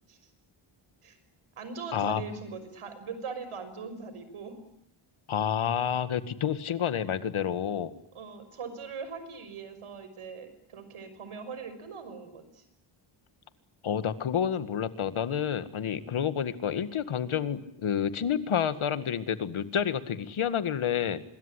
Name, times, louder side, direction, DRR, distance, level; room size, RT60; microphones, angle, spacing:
voice 1, 1.6-4.6 8.1-12.6, right 5 dB, 80° right, 10 dB, 6.0 m, -41 dB
voice 2, 5.3-7.9 13.8-21.2, left 8 dB, 75° left, 13 dB, 2.0 m, -29 dB
25.5 x 21.5 x 10.0 m, 0.77 s
wide cardioid pair, 110°, 50 cm